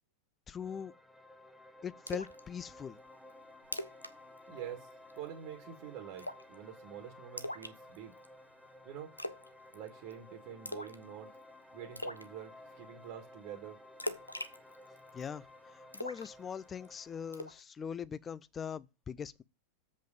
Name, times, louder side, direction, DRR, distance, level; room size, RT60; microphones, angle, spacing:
voice 1, 0.5-0.9 1.8-3.0 15.1-15.4 15.7-19.4, left 7 dB, 20° left, 0.5 m, -41 dB
sound 1, 0.6-17.6, left 1 dB, ahead, 1.2 m, -55 dB
Splash splatter, 2.1-2.4 2.8-2.9 3.3-3.4 3.6-4.1 4.4-4.6 4.9-5.3 6.2-6.6 7.4-8.3 9.2-9.5 9.7-10.1 10.7-11.0 11.3-11.4 12.0-12.3 14.0-15.3 15.9-16.9 17.3-17.6, left 1 dB, 85° left, 0.6 m, -40 dB
voice 2, 4.5-4.9 5.1-8.1 8.8-9.1 9.7-11.3 11.7-13.8, right 10 dB, 45° right, 1.6 m, -46 dB
7.7 x 5.2 x 5.1 m
figure-of-eight pair, 90°, 0 cm